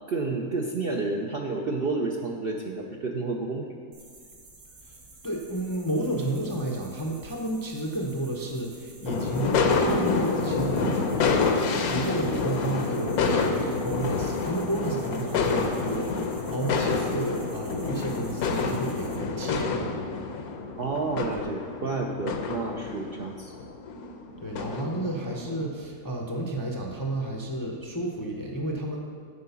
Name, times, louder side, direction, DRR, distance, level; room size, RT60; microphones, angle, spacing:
voice 1, 0.1-3.7 10.8-11.0 20.8-23.5, right 3 dB, 60° right, 0 dB, 0.6 m, -30 dB
sound 1, 3.9-19.2, right 2 dB, 90° right, 2.0 m, -51 dB
voice 2, 5.2-20.0 24.4-29.0, right 1 dB, 25° left, -1 dB, 0.5 m, -31 dB
sound 2, 9.1-25.7, left 4 dB, 75° left, 1.2 m, -28 dB
8.4 x 4.9 x 6.9 m, 2.1 s
omnidirectional pair, 1.6 m